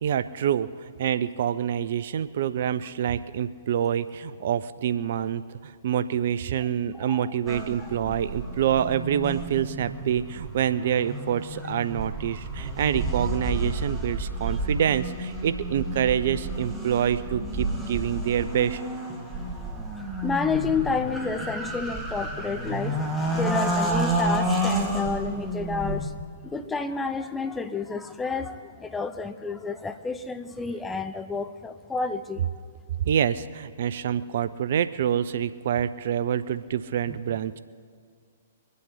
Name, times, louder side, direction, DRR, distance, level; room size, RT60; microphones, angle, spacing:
voice 1, 0.0-18.8 33.0-37.6, right 9 dB, 55° right, 14 dB, 0.5 m, -26 dB
voice 2, 6.9-7.3 7.8-7.9 20.2-26.1 26.4-32.5 37.1-37.4, left 4 dB, 10° left, 9 dB, 0.7 m, -30 dB
sound 1, 7.5-26.1, right 1 dB, 5° right, 1.8 m, -30 dB
23.5 x 8.4 x 5.7 m, 2.1 s
figure-of-eight pair, 115°, 0 cm